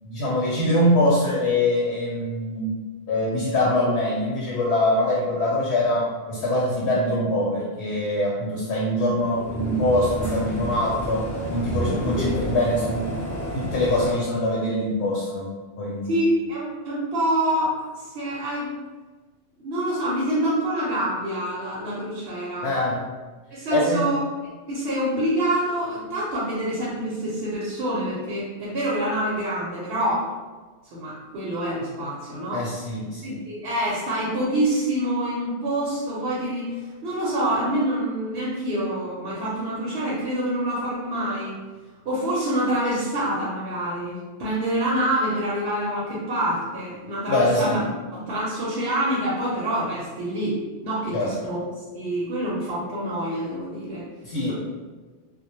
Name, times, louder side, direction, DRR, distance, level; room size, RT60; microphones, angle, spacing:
voice 1, 0.0-2.7 3.1-13.2 13.5-15.5 15.8-16.1 22.6-23.0 23.7-24.1 32.5-33.4 47.3-47.8 51.1-51.3 54.2-54.5, left 1 dB, 70° left, -5 dB, 0.8 m, -23 dB
sound 1, 9.1-14.1, right 1 dB, 5° left, 0.8 m, -30 dB
voice 2, 16.1-18.7 19.6-22.7 23.5-30.3 30.9-32.6 33.2-41.6 42.1-47.8 48.1-51.6 51.9-54.0 54.5-54.6, right 1 dB, 65° right, -7 dB, 0.8 m, -26 dB
2.1 x 2.1 x 2.9 m, 1.3 s
omnidirectional pair, 1.2 m